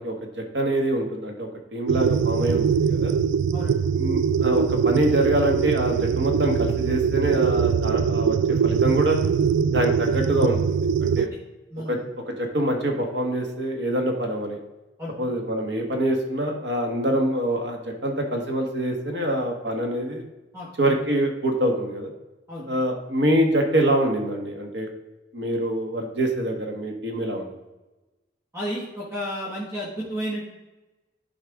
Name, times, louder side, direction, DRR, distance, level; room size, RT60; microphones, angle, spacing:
voice 1, 0.0-3.1 4.0-8.4 8.6-9.2 9.7-11.3 11.9-12.0 12.3-14.6 15.2-20.2 20.8-22.1 22.7-24.9 25.3-27.5, right 1 dB, 70° right, 3 dB, 1.5 m, -25 dB
sound 1, 1.9-11.3, right 6 dB, 85° right, 0.3 m, -22 dB
voice 2, 11.7-12.0 15.0-15.1 20.5-20.7 22.5-22.7 28.5-30.4, equal, 15° right, -5 dB, 1.6 m, -32 dB
11.5 x 4.7 x 3.6 m, 1.1 s
head